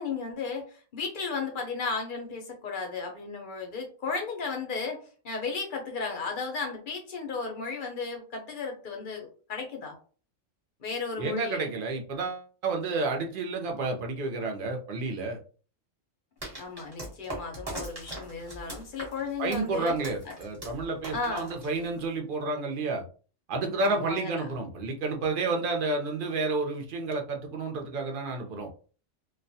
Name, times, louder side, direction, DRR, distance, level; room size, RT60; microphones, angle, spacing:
voice 1, 0.0-9.9 10.8-11.7 16.5-19.9 20.3-20.4 21.1-21.5 23.8-24.4, left 4 dB, 55° left, 2 dB, 0.6 m, -34 dB
voice 2, 11.2-15.4 19.4-23.0 23.5-28.7, right 3 dB, 60° right, 3 dB, 0.6 m, -30 dB
sound 1, 16.4-22.2, right 1 dB, 30° right, 0.9 m, -41 dB
2.3 x 2.1 x 2.6 m, 0.39 s
omnidirectional pair, 1.3 m